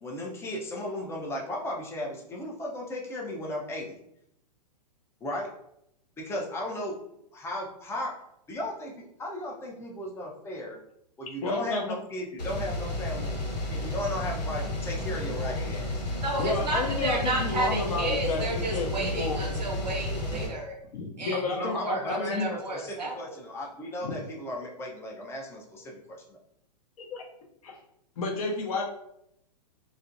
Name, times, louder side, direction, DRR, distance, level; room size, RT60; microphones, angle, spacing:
voice 1, 0.0-4.0 5.2-5.5 6.2-7.0 7.3-8.2 8.5-10.8 11.2-13.3 13.7-16.0 21.5-26.4, left 1 dB, 10° left, -2 dB, 0.4 m, -35 dB
voice 2, 11.4-12.0 15.4-15.5 16.4-19.4 20.9-22.5 24.0-24.1 27.0-27.3 27.6-27.8 28.2-28.8, left 3 dB, 60° left, 0 dB, 0.7 m, -31 dB
sound 1, 12.4-20.5, left 1 dB, 80° left, 1.0 m, -32 dB
voice 3, 16.1-20.8 21.2-21.4 21.7-23.2, right 2 dB, 85° right, 1 dB, 0.7 m, -32 dB
2.4 x 2.1 x 2.5 m, 0.76 s
hypercardioid pair, 115°, 21 cm